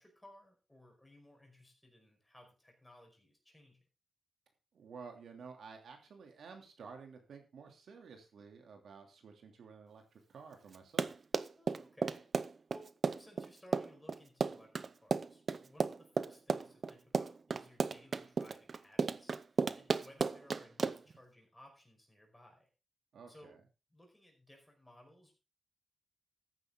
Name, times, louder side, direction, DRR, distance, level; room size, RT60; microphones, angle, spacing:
voice 1, 0.0-3.8 11.6-22.7 23.3-23.6 23.9-25.4, left 1 dB, 10° left, 1 dB, 5.2 m, -60 dB
voice 2, 4.7-11.1 23.1-23.6, right 5 dB, 80° right, 4 dB, 2.9 m, -52 dB
Run, 10.7-21.2, right 5 dB, 45° right, 0.6 m, -34 dB
14.0 x 9.7 x 3.8 m, 0.32 s
wide cardioid pair, 120°, 0 cm